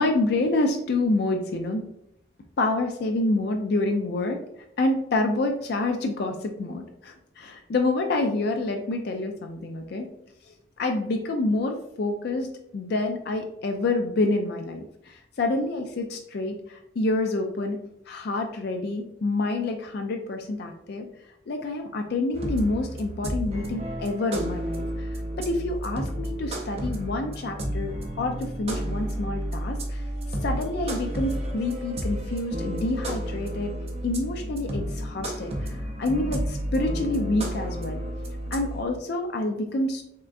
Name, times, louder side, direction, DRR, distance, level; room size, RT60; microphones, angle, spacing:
voice 1, 0.0-1.8 2.6-4.4 4.8-10.1 10.5-17.8 18.1-21.1 21.5-25.1 25.3-27.9 28.2-30.0 30.4-33.7 34.0-38.0 38.5-40.0, left 2 dB, 55° left, 4 dB, 0.4 m, -27 dB
sound 1, 22.3-38.8, right 1 dB, 30° right, 0.5 m, -31 dB
3.6 x 3.3 x 2.4 m, 0.77 s
head